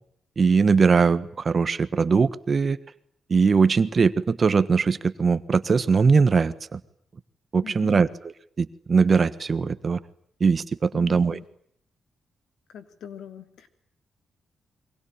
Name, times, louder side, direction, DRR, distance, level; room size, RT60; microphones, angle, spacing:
voice 1, 0.4-2.8 3.3-6.8 7.5-8.3 8.6-10.0 10.4-11.4, right 5 dB, 40° right, 14 dB, 1.4 m, -21 dB
voice 2, 7.6-8.1 10.9-11.4 12.7-13.7, left 9 dB, 80° left, 10 dB, 3.1 m, -42 dB
27.5 x 23.5 x 8.9 m, 0.65 s
cardioid pair, 100°, 0 cm